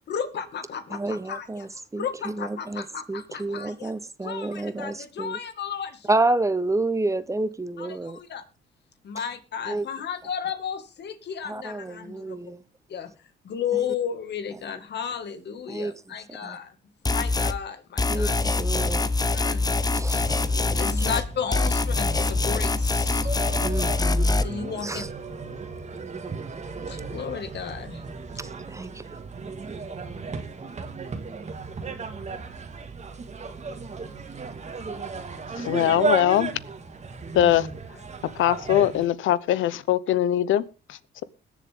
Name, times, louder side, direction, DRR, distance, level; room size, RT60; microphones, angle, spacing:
voice 1, 0.1-3.9 4.2-6.2 7.8-8.5 9.0-12.4 12.9-13.1 13.4-16.7 17.0-18.3 19.3-19.6 20.7-23.3 24.4-25.1 26.9-28.0, left 7 dB, 60° left, 2.1 m, -33 dB
voice 2, 0.9-5.4 6.1-8.2 9.7-9.9 11.4-12.6 15.7-15.9 16.4-16.6 18.1-19.1 19.9-20.5 23.6-24.4 24.8-25.1 28.4-29.2, right 2 dB, 15° right, 1.0 m, -29 dB
sound 1, 17.1-17.6 18.0-21.3 21.5-24.4, left 3 dB, 20° left, 0.8 m, -24 dB
sound 2, 20.2-39.1, right 4 dB, 35° right, 1.9 m, -35 dB
voice 3, 35.6-36.5 37.3-37.7 38.4-41.2, left 12 dB, 80° left, 0.8 m, -22 dB
21.0 x 7.3 x 3.7 m
cardioid pair, 90°, 20 cm